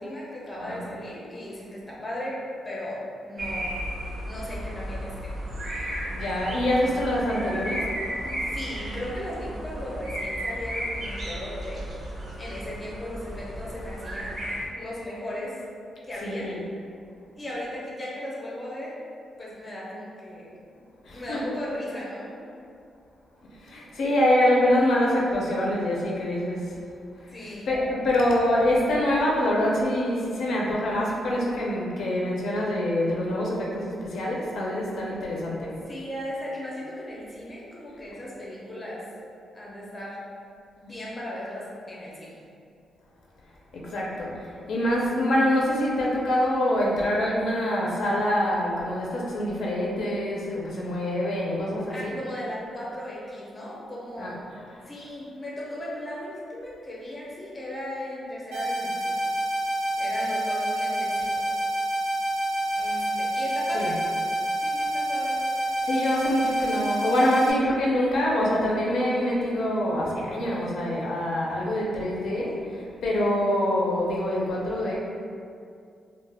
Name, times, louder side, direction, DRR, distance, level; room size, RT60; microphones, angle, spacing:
voice 1, 0.0-5.4 8.2-14.5 14.7-15.6 16.1-16.6 17.3-19.0 19.4-20.5 21.0-22.5 27.3-27.7 35.6-39.0 39.5-40.2 40.8-42.4 51.9-54.5 54.9-59.2 60.0-61.6 62.7-64.0 64.6-65.4, left 1 dB, 15° left, -6 dB, 0.5 m, -37 dB
sound 1, 3.4-14.7, equal, 40° right, 0.5 m, -34 dB
voice 2, 6.2-7.8 16.2-16.6 21.0-21.4 23.6-26.7 27.7-35.7 43.7-52.1 54.2-54.3 63.7-63.9 65.8-75.0, left 1 dB, 65° left, -4 dB, 0.4 m, -25 dB
sound 2, 58.5-67.5, right 1 dB, 80° right, 0.7 m, -27 dB
2.2 x 2.0 x 3.3 m, 2.4 s
wide cardioid pair, 160°, 0 cm